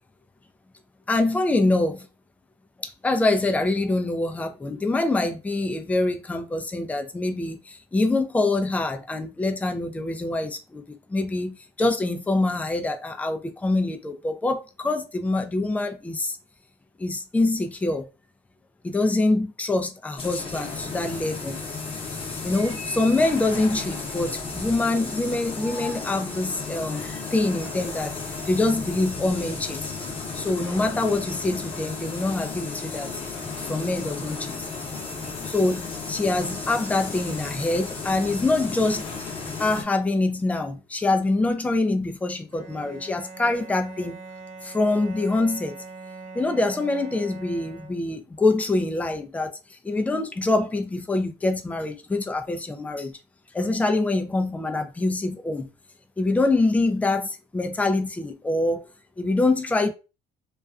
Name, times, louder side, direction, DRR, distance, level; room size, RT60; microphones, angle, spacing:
voice 1, 1.1-2.1 2.8-10.8 11.1-16.4 17.0-18.1 18.8-21.6 22.4-28.1 28.5-29.9 30.3-33.2 33.6-34.7 35.4-39.1 39.6-44.2 44.6-45.8 46.3-53.1 53.5-55.7 56.2-58.9 59.2-59.9, left 2 dB, 10° left, 0.3 m, -25 dB
sound 1, 20.2-39.8, left 4 dB, 35° left, 0.8 m, -34 dB
Bowed string instrument, 42.5-48.3, right 4 dB, 45° right, 0.7 m, -42 dB
2.4 x 2.2 x 2.4 m
cardioid pair, 110°, 17 cm